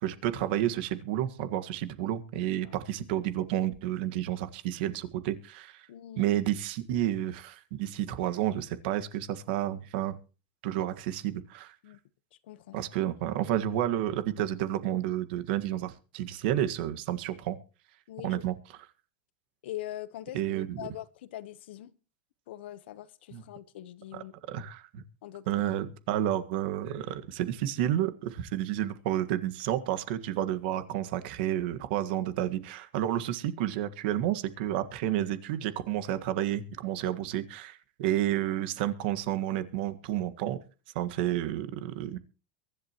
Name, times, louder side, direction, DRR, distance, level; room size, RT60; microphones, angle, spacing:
voice 1, 0.0-5.9 6.2-10.2 10.6-11.7 12.7-17.6 18.2-18.5 20.3-20.9 23.3-23.4 24.1-25.0 25.5-40.6 40.9-42.2, right 12 dB, 65° right, 1.7 m, -30 dB
voice 2, 5.9-6.3 11.8-12.0 12.4-12.8 18.1-18.4 19.6-20.4 20.8-21.9 22.5-24.3 25.2-25.6, left 13 dB, 75° left, 1.1 m, -42 dB
23.0 x 11.5 x 3.0 m
supercardioid pair, 135°, 6 cm